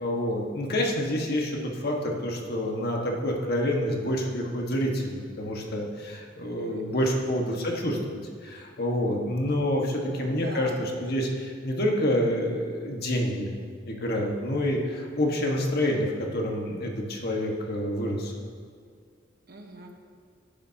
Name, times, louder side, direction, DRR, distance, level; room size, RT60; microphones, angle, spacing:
voice 1, 0.0-13.5 13.8-18.3, left 1 dB, 55° left, 0 dB, 1.6 m, -28 dB
voice 2, 6.6-7.6 9.9-10.9 19.5-19.9, right 2 dB, 50° right, 3 dB, 1.2 m, -44 dB
17.5 x 10.0 x 2.9 m, 2.2 s
head